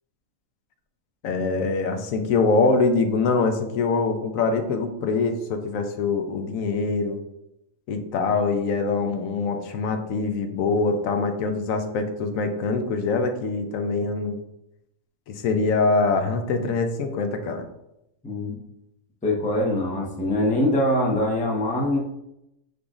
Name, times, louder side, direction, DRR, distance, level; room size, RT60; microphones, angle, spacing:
voice 1, 1.2-7.2 7.9-14.4 15.3-17.6, left 4 dB, 75° left, 6 dB, 1.0 m, -24 dB
voice 2, 19.2-22.0, left 1 dB, 10° left, -1 dB, 0.5 m, -23 dB
5.1 x 3.9 x 2.4 m, 0.84 s
omnidirectional pair, 1.4 m